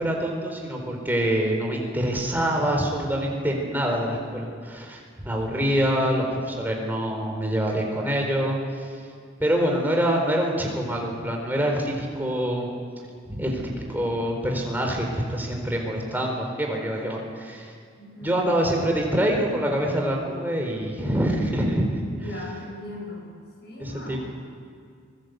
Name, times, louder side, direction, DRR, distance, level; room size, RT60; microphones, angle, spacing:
voice 1, 0.0-9.0 9.4-12.7 13.3-17.7 18.2-22.0 23.8-24.2, equal, 10° right, 0 dB, 4.2 m, -25 dB
voice 2, 18.0-18.4 22.1-23.3 23.6-24.2, left 1 dB, 55° left, -1 dB, 7.2 m, -38 dB
25.0 x 20.0 x 8.1 m, 2.2 s
head